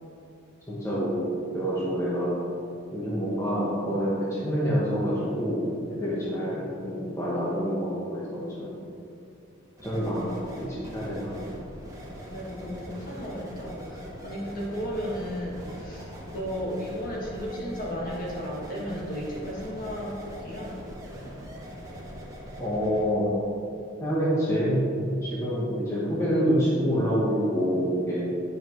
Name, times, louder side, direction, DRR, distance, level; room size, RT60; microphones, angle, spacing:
voice 1, 0.7-2.3 2.9-8.8 9.8-11.4 22.6-23.4 24.0-28.3, equal, 15° left, -8 dB, 1.1 m, -27 dB
sound 1, 9.8-23.1, equal, 15° right, 1.0 m, -41 dB
voice 2, 12.3-20.2 20.4-20.7, equal, 45° left, -5 dB, 1.7 m, -34 dB
9.8 x 5.1 x 3.1 m, 2.5 s
head